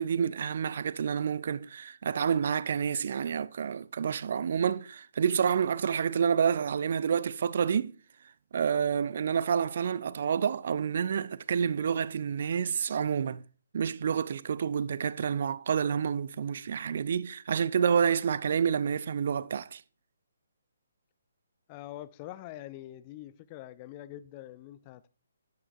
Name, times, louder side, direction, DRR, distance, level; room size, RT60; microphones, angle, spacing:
voice 1, 0.0-7.9 8.5-13.4 13.7-19.8, right 7 dB, 50° right, 0.3 m, -28 dB
voice 2, 21.7-25.1, left 14 dB, 25° left, 0.4 m, -44 dB
11.0 x 9.6 x 2.6 m
figure-of-eight pair, 135°, 0 cm